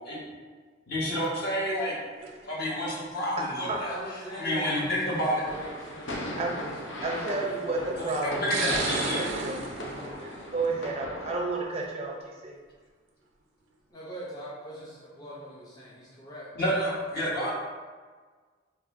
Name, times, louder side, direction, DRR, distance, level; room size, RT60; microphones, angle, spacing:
voice 1, 0.9-2.0 2.4-3.9 4.3-5.4 8.1-9.2 16.6-17.5, equal, 55° left, -6 dB, 1.2 m, -29 dB
sound 1, 2.2-2.6 3.7-3.8 4.9-5.0 5.5-5.6 7.0-7.4 8.1-11.0 11.3-11.8, right 4 dB, 85° right, 0.5 m, -35 dB
voice 2, 3.6-8.1 13.9-16.5, right 1 dB, 20° left, -7 dB, 0.6 m, -42 dB
sound 2, 5.5-11.4, left 1 dB, 75° left, 0.6 m, -37 dB
voice 3, 7.0-12.1 12.4-12.6, right 3 dB, 35° right, -1 dB, 0.5 m, -32 dB
5.1 x 2.6 x 2.5 m, 1.5 s
head